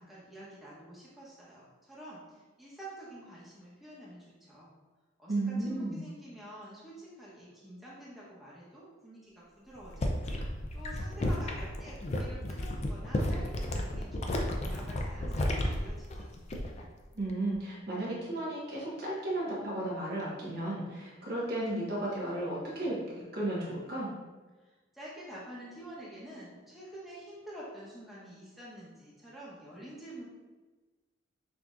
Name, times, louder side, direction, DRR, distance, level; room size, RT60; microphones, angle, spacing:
voice 1, 0.0-4.7 5.2-10.2 10.5-16.3 24.9-30.2, right 1 dB, ahead, -8 dB, 0.9 m, -48 dB
voice 2, 5.3-6.0 17.1-23.0 23.3-24.1, right 1 dB, 50° right, -6 dB, 1.2 m, -34 dB
sound 1, 9.8-16.9 17.2-17.6, left 1 dB, 35° left, 0.4 m, -33 dB
5.9 x 2.8 x 2.4 m, 1.3 s
head